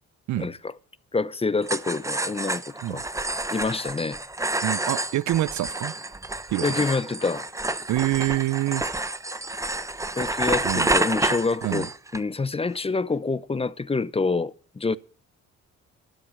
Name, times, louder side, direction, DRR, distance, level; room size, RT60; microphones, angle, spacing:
voice 1, 0.4-0.7 1.1-2.6 2.9-3.0 3.5-4.2 6.6-7.5 10.2-15.0, left 4 dB, 20° left, 0.7 m, -27 dB
sound 1, 1.6-12.2, right 2 dB, 10° right, 1.0 m, -29 dB
voice 2, 4.6-5.9 6.5-6.6 7.9-8.8 10.6-10.9 11.6-11.9, right 15 dB, 70° right, 0.7 m, -26 dB
12.5 x 12.5 x 6.5 m
cardioid pair, 90°, 30 cm